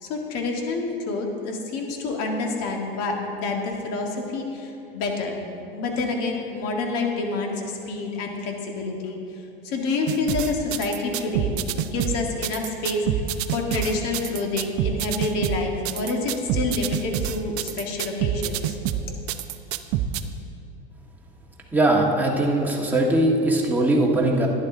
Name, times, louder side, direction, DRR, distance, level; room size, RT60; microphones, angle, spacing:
voice 1, 0.0-5.4 5.7-9.2 9.6-13.2 13.5-18.8, left 3 dB, 55° left, 1 dB, 1.9 m, -28 dB
sound 1, 10.1-20.2, right 10 dB, 50° right, 0.6 m, -27 dB
voice 2, 21.7-24.5, right 1 dB, 5° right, -2 dB, 1.6 m, -20 dB
11.5 x 10.5 x 3.9 m, 2.8 s
supercardioid pair, 105°, 30 cm